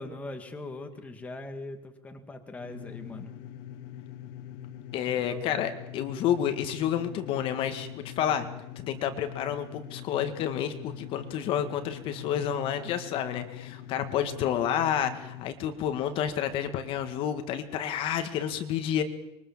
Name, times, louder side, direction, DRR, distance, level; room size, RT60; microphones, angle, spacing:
voice 1, 0.0-3.3 5.3-5.6, left 2 dB, 10° left, 5 dB, 1.9 m, -41 dB
sound 1, 2.6-15.5, left 10 dB, 55° left, 2.3 m, -43 dB
voice 2, 4.9-8.5 8.8-19.0, left 9 dB, 40° left, 8 dB, 1.9 m, -30 dB
25.5 x 22.5 x 7.3 m, 0.85 s
cardioid pair, 170°, 14 cm